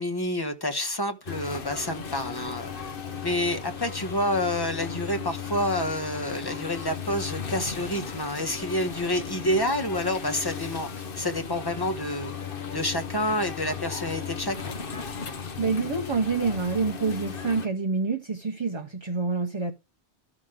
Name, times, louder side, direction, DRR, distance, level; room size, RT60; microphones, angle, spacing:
voice 1, 0.0-2.9 3.2-12.3 12.7-14.7, left 1 dB, 20° left, 1.2 m, -28 dB
sound 1, 1.3-17.7, left 6 dB, 55° left, 1.2 m, -36 dB
voice 2, 15.6-19.7, right 4 dB, 30° right, 0.8 m, -27 dB
13.0 x 5.9 x 5.0 m
omnidirectional pair, 1.2 m